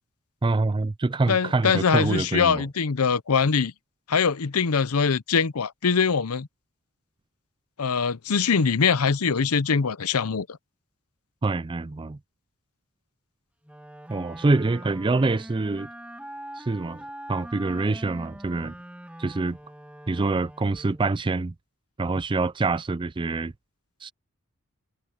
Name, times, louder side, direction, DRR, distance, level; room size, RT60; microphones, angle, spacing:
voice 1, 0.4-2.7 11.4-12.2 14.1-15.9 16.6-17.0 17.3-18.7 19.2-19.6 20.1-21.5 22.0-23.5 24.0-24.1, right 3 dB, 20° right, 0.4 m, -25 dB
voice 2, 1.3-3.7 4.1-6.5 7.8-10.5, left 5 dB, 90° left, 0.7 m, -23 dB
Wind instrument woodwind instrument, 13.6-21.1, right 1 dB, 5° right, 1.7 m, -43 dB
head